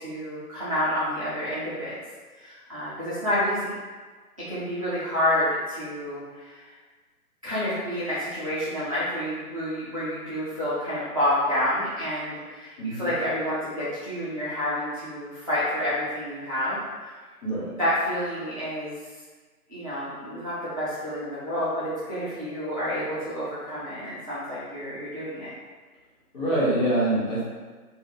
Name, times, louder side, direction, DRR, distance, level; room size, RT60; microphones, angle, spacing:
voice 1, 0.0-2.0 2.3-3.7 4.5-6.7 7.4-17.1 17.7-18.9 19.7-25.5, left 1 dB, 25° right, -12 dB, 0.5 m, -29 dB
voice 2, 12.8-13.1 17.4-17.7 26.3-27.4, right 1 dB, 35° left, -9 dB, 1.4 m, -25 dB
3.6 x 2.4 x 2.8 m, 1.4 s
figure-of-eight pair, 145°, 46 cm